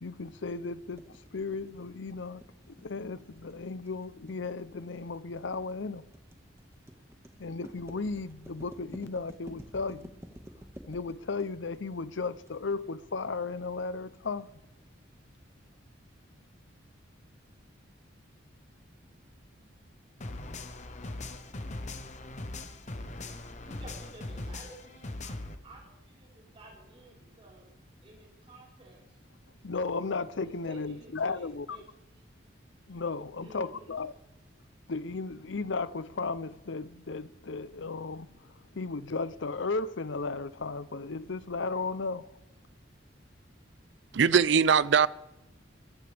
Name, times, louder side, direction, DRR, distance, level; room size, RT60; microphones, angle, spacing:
voice 1, 0.0-1.1 1.3-2.4 2.7-6.0 7.4-10.1 10.9-14.5 29.6-31.8 32.9-34.1 34.9-42.3, left 4 dB, 75° left, 0.7 m, -35 dB
sound 1, 0.9-12.5, equal, 15° right, 1.6 m, -50 dB
sound 2, 20.2-25.6, left 2 dB, 35° left, 1.1 m, -40 dB
voice 2, 23.6-25.3 25.6-27.7 28.0-29.2 30.4-31.8 33.4-34.0, right 2 dB, 30° right, 4.6 m, -52 dB
voice 3, 44.1-45.1, right 6 dB, 65° right, 0.5 m, -21 dB
23.5 x 14.5 x 3.5 m
head